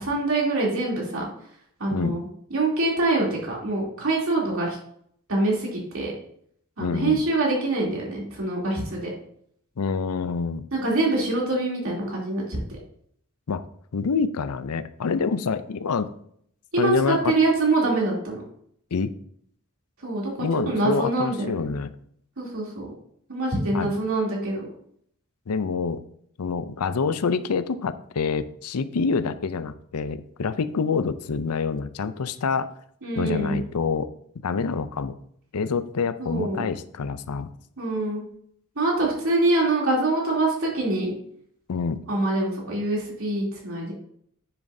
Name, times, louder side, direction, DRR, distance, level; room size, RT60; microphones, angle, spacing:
voice 1, 0.0-1.2 1.8-2.2 2.5-4.8 5.3-6.1 6.8-9.0 10.7-12.6 16.7-18.4 20.0-20.3 20.6-21.5 22.4-22.9 23.3-24.6 33.0-33.6 36.2-36.6 37.8-38.2 38.7-41.1 42.1-43.9, right 2 dB, 65° right, -3 dB, 3.1 m, -24 dB
voice 2, 6.8-7.2 9.8-10.6 13.5-13.6 13.9-16.1 16.8-17.4 18.9-19.1 20.4-21.9 23.7-23.9 25.5-26.0 26.4-32.7 33.2-34.1 34.4-35.2 35.5-37.5 41.7-42.0, left 5 dB, 85° left, 13 dB, 0.5 m, -26 dB
9.9 x 7.1 x 2.7 m, 0.67 s
head